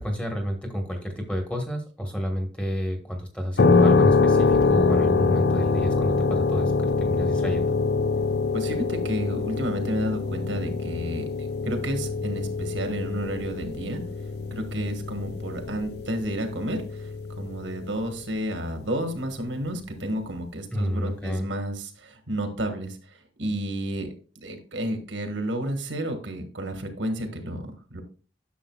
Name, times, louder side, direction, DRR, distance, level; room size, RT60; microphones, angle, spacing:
voice 1, 0.0-7.8 20.7-21.5, equal, 5° left, 3 dB, 1.3 m, -30 dB
sound 1, 3.6-18.2, left 4 dB, 60° left, 0.5 m, -24 dB
voice 2, 8.5-11.2 11.6-14.0 14.5-17.1 17.4-27.7 27.9-28.0, right 1 dB, 90° right, 6 dB, 1.6 m, -31 dB
10.0 x 6.8 x 2.3 m, 0.37 s
head